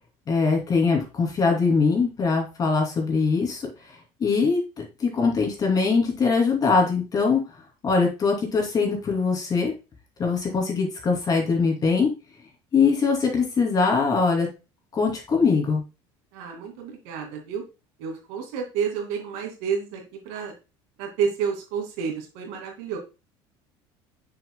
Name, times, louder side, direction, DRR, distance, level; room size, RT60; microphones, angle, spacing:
voice 1, 0.3-3.7 4.2-7.4 7.8-9.7 10.2-12.1 12.7-14.5 14.9-15.8, left 4 dB, 35° left, 1 dB, 2.8 m, -22 dB
voice 2, 16.3-17.6 18.0-20.5 21.0-23.0, right 6 dB, 80° right, 3 dB, 2.2 m, -30 dB
7.0 x 6.7 x 2.2 m, 0.29 s
supercardioid pair, 115°, 11 cm